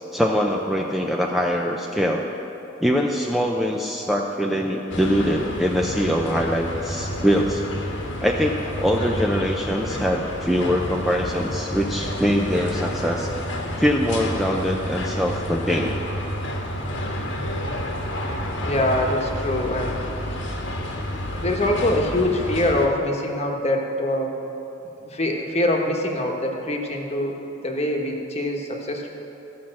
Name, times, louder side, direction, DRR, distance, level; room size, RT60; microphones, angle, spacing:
voice 1, 0.1-2.2 2.8-7.6 8.2-13.3 13.8-15.9, equal, ahead, 0 dB, 0.5 m, -23 dB
sound 1, 4.9-22.9, equal, 70° left, 1.3 m, -29 dB
voice 2, 18.6-20.0 21.3-24.3 25.1-27.3 27.6-29.1, left 1 dB, 35° left, 1 dB, 1.2 m, -24 dB
14.0 x 5.8 x 7.6 m, 3.0 s
head